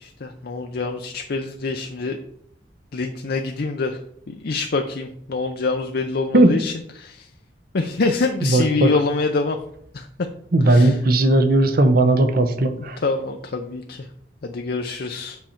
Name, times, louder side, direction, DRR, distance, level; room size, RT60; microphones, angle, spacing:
voice 1, 0.0-2.2 2.9-4.0 4.3-7.3 7.7-9.6 9.9-10.1 10.6-11.0 13.0-14.1 14.4-15.4, left 3 dB, 55° left, 4 dB, 0.5 m, -25 dB
voice 2, 8.4-8.9 10.5-13.0, right 2 dB, 55° right, 9 dB, 0.9 m, -17 dB
7.6 x 5.7 x 4.4 m, 0.70 s
head